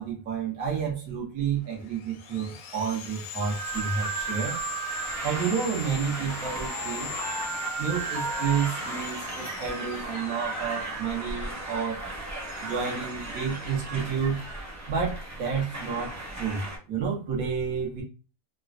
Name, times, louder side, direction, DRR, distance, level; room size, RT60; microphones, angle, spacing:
voice 1, 0.0-4.6 5.2-7.1 7.8-12.0 12.6-14.4 14.9-18.0, right 6 dB, 70° right, -2 dB, 1.4 m, -30 dB
Sawing, 1.6-11.5, left 7 dB, 75° left, 1.0 m, -41 dB
sound 1, 3.4-16.8, right 3 dB, 15° right, 0.6 m, -35 dB
3.7 x 2.0 x 2.4 m, 0.34 s
omnidirectional pair, 1.5 m